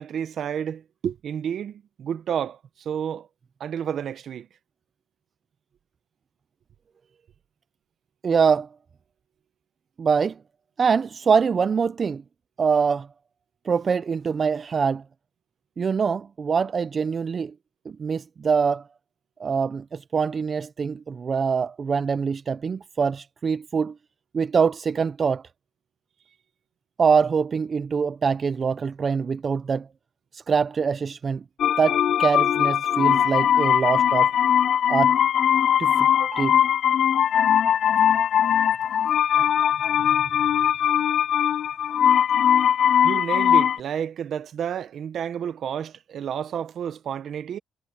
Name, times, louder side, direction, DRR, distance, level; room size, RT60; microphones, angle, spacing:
voice 1, 0.0-3.3 3.6-4.5 43.0-47.6, right 8 dB, 65° right, 1.2 m, -30 dB
voice 2, 8.2-8.7 10.0-10.4 10.8-12.2 12.6-13.1 13.7-15.0 15.8-17.5 17.9-18.8 19.4-23.9 24.3-25.4 27.0-29.9 30.3-31.4 31.8-34.3 34.9-35.1 35.8-36.6, right 6 dB, 45° right, 0.5 m, -24 dB
sound 1, 31.6-43.8, left 9 dB, 65° left, 0.3 m, -20 dB
cardioid pair, 90°, 0 cm